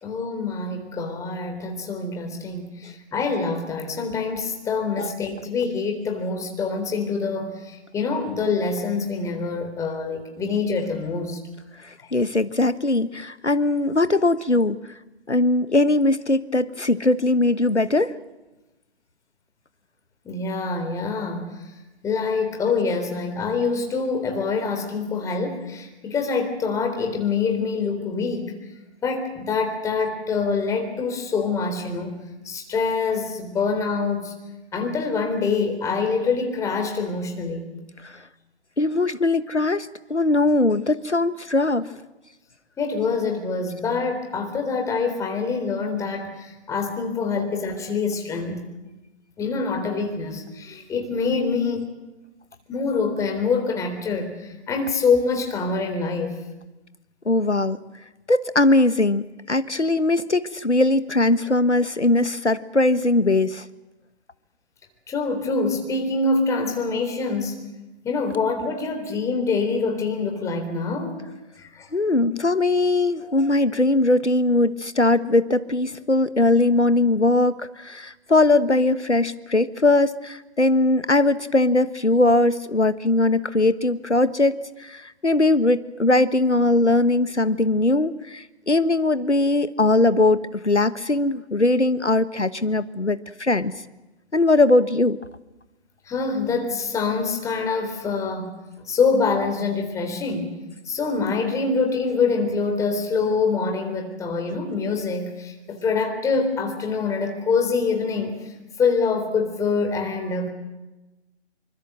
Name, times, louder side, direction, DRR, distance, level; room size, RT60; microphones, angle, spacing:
voice 1, 0.0-11.4 12.0-12.1 20.3-21.5 22.0-28.5 29.0-32.1 32.4-34.3 34.7-37.6 42.8-48.6 49.4-51.9 52.7-56.4 65.1-67.6 68.0-71.2 71.6-71.9 73.2-73.3 96.1-100.5 100.9-108.4 108.8-110.5, left 4 dB, 10° left, 4 dB, 3.7 m, -25 dB
voice 2, 11.8-14.8 15.3-18.1 38.0-38.1 38.8-41.9 57.2-57.8 58.3-63.6 71.9-84.5 84.8-93.7 94.3-95.2, left 2 dB, 90° left, 13 dB, 1.4 m, -20 dB
26.5 x 24.5 x 7.8 m, 1.0 s
figure-of-eight pair, 135°, 34 cm